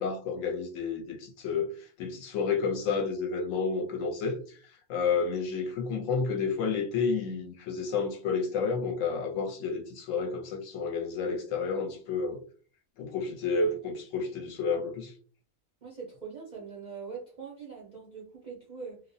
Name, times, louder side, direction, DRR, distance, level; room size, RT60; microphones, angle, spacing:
voice 1, 0.0-12.4 13.0-15.1, left 5 dB, 70° left, 0.9 m, -30 dB
voice 2, 15.8-19.0, right 5 dB, 55° right, 0.5 m, -42 dB
2.4 x 2.1 x 2.6 m
omnidirectional pair, 1.5 m